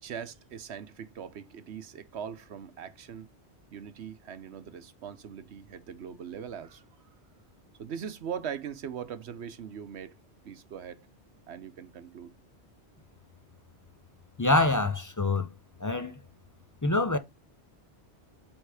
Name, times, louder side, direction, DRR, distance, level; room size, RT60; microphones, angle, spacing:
voice 1, 0.0-3.3 3.7-6.8 7.8-10.2 10.4-11.1 11.5-12.3, right 8 dB, 75° right, 1.1 m, -40 dB
voice 2, 14.4-15.5 15.8-16.1 16.8-17.2, left 2 dB, 30° left, 0.4 m, -25 dB
8.0 x 3.6 x 4.8 m
omnidirectional pair, 1.2 m